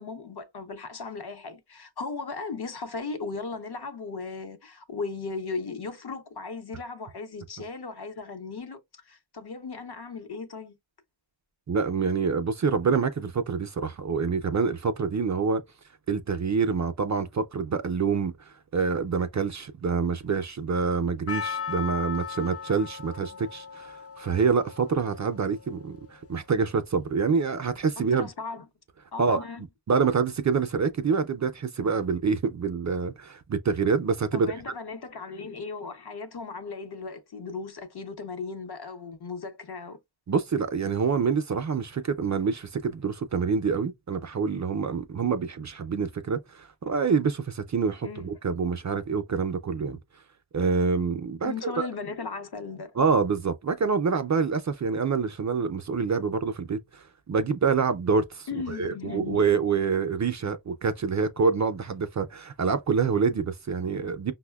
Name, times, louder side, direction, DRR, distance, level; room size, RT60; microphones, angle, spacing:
voice 1, 0.0-8.8 9.0-10.8 28.1-28.7 29.1-29.6 34.3-40.0 48.0-48.3 51.4-52.9 58.5-59.5, left 4 dB, 60° left, 0.8 m, -37 dB
voice 2, 11.7-15.6 16.1-18.3 18.7-28.3 29.2-29.4 29.9-34.5 40.3-50.0 50.5-51.9 53.0-64.3, right 5 dB, 40° right, 0.4 m, -26 dB
Percussion, 21.3-26.2, left 7 dB, 35° left, 0.4 m, -37 dB
5.4 x 2.1 x 2.2 m
wide cardioid pair, 70°, 44 cm